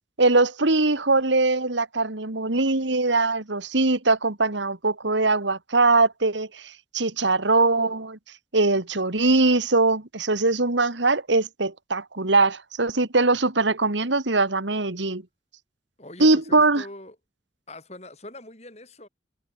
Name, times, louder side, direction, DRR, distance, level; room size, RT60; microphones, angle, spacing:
voice 1, 0.2-8.2 8.5-15.2 16.2-16.8, right 3 dB, 80° right, 2.2 m, -22 dB
voice 2, 16.0-17.2 17.7-19.1, left 1 dB, 35° left, 7.5 m, -42 dB
head